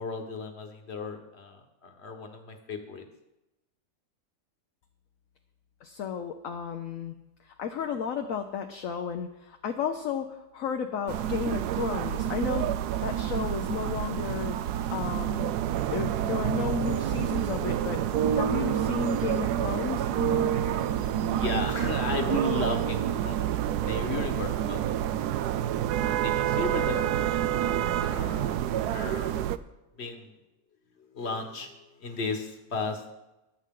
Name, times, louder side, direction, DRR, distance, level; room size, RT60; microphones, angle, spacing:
voice 1, 0.0-3.0 21.2-23.6 23.9-25.3 26.0-28.6 28.9-29.4 29.9-30.3 31.0-33.1, left 4 dB, 45° left, 4 dB, 1.6 m, -35 dB
voice 2, 5.8-7.1 7.4-12.7 13.0-14.6 14.9-15.5 15.9-18.0 18.3-20.1, left 7 dB, 65° left, 5 dB, 1.1 m, -33 dB
sound 1, 11.1-29.6, right 11 dB, 80° right, 1.1 m, -29 dB
sound 2, 16.8-23.1, right 6 dB, 65° right, 1.5 m, -32 dB
21.5 x 8.0 x 3.8 m, 0.96 s
omnidirectional pair, 1.7 m